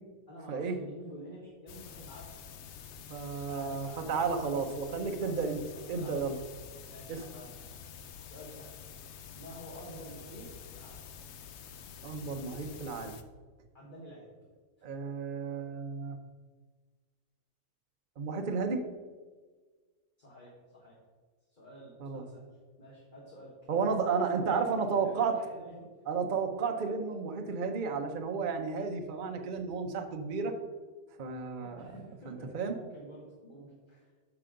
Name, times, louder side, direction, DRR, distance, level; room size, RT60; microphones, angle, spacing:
voice 1, 0.3-2.3 3.5-4.0 4.3-4.6 5.2-6.2 6.9-7.8 8.2-8.7 9.3-10.5 10.7-11.0 13.7-14.3 20.2-21.0 21.5-22.4 22.8-24.6 25.0-25.9 31.6-34.1, equal, 35° left, -5 dB, 1.6 m, -49 dB
sound 1, 1.7-13.2, left 7 dB, 60° left, 0.7 m, -48 dB
voice 2, 3.1-5.6 5.9-6.3 7.1-7.2 12.0-13.2 14.8-16.2 18.2-18.8 22.0-22.2 23.7-25.3 26.1-30.5 31.2-31.9 32.3-32.7, right 5 dB, 45° right, 5 dB, 0.7 m, -32 dB
10.5 x 6.1 x 3.8 m, 1.4 s
omnidirectional pair, 1.6 m